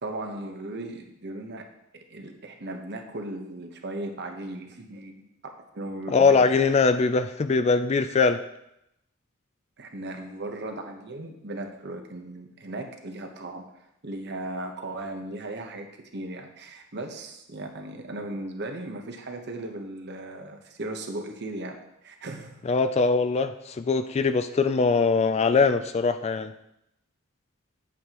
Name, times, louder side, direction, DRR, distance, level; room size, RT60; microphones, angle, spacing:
voice 1, 0.0-1.7 1.9-5.3 5.6-6.8 9.8-13.6 14.0-15.9 16.1-22.6, right 2 dB, 50° right, 4 dB, 1.1 m, -37 dB
voice 2, 6.1-8.4 22.7-26.5, left 4 dB, 30° left, 10 dB, 0.3 m, -22 dB
9.4 x 8.4 x 3.0 m, 0.83 s
head